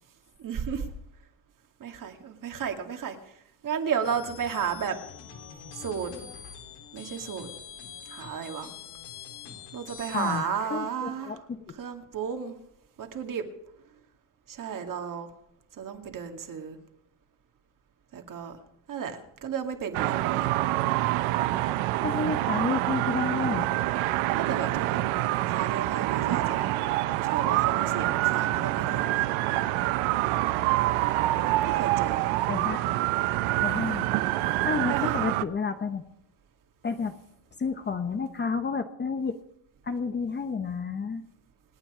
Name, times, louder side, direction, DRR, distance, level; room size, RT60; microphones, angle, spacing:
voice 1, 0.4-0.9 1.8-5.0 5.7-6.1 6.9-7.5 8.0-8.7 9.7-11.4 11.7-12.6 13.0-13.4 14.5-15.3 15.8-16.8 18.1-18.6 18.9-20.5 24.3-26.7 27.2-29.4 31.6-32.3 34.9-35.2, right 7 dB, 40° right, 5 dB, 2.4 m, -33 dB
sound 1, 4.0-10.4, left 7 dB, 90° left, 3.7 m, -44 dB
voice 2, 10.1-10.4 10.7-11.8 22.0-23.7 32.5-33.0 33.6-34.1 34.6-36.0 36.8-37.2 37.6-39.4 39.8-41.2, left 5 dB, 20° left, 8 dB, 0.9 m, -30 dB
sound 2, 19.9-35.4, right 16 dB, 85° right, 0.9 m, -26 dB
27.5 x 9.2 x 5.0 m, 0.77 s
cardioid pair, 130°, 47 cm